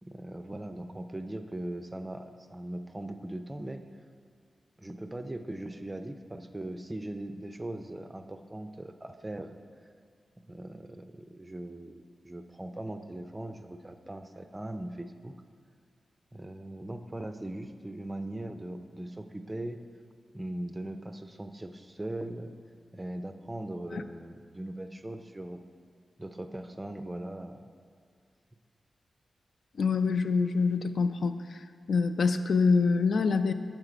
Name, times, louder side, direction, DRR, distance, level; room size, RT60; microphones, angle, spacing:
voice 1, 0.0-3.8 4.8-9.6 10.5-15.3 16.3-19.8 20.3-22.5 22.9-25.6 26.2-27.7, right 1 dB, 15° right, 7 dB, 0.4 m, -40 dB
voice 2, 29.8-31.3 31.9-33.5, left 4 dB, 65° left, 9 dB, 0.3 m, -25 dB
7.8 x 7.4 x 4.9 m, 2.2 s
wide cardioid pair, 145°, 0 cm